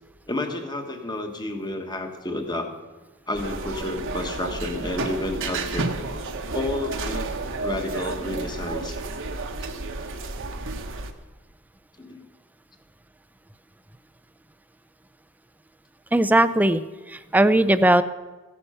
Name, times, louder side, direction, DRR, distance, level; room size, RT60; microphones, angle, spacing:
voice 1, 0.3-2.7 3.3-5.9 6.5-7.3 7.6-9.0 12.0-12.2, left 2 dB, 20° left, 5 dB, 1.4 m, -30 dB
sound 1, 3.3-11.1, right 3 dB, 60° right, 1.0 m, -31 dB
voice 2, 16.1-16.8 17.1-18.0, right 1 dB, 5° right, 13 dB, 0.4 m, -18 dB
15.5 x 9.9 x 5.6 m, 1.2 s
head